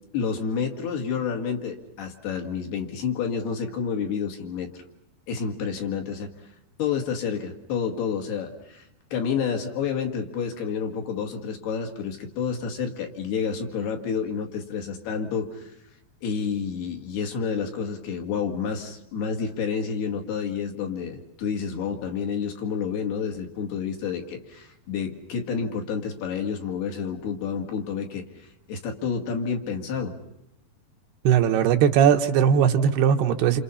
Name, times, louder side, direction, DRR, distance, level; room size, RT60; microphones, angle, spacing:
voice 1, 0.1-4.7 5.3-6.3 6.8-8.9 9.1-15.7 16.2-30.2, left 6 dB, 70° left, 4.1 m, -29 dB
voice 2, 31.2-33.6, right 8 dB, 75° right, 3.1 m, -19 dB
29.0 x 28.0 x 5.6 m
omnidirectional pair, 4.9 m